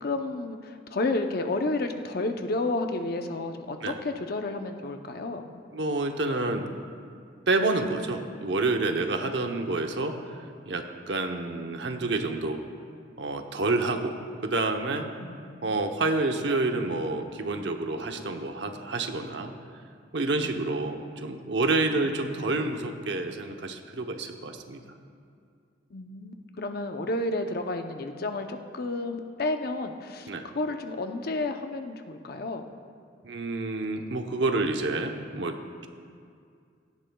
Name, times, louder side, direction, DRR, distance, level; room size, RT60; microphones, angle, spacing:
voice 1, 0.0-5.4 15.2-15.8 20.4-20.5 22.0-22.1 25.9-30.3 30.5-32.6, left 2 dB, 60° left, 6 dB, 0.7 m, -31 dB
voice 2, 5.7-6.7 7.5-10.2 10.7-12.6 13.2-14.1 14.4-15.1 15.6-19.5 20.1-24.8 30.3-30.5 33.2-35.9, right 2 dB, 75° right, 5 dB, 0.9 m, -28 dB
17.0 x 14.0 x 2.3 m, 2.3 s
head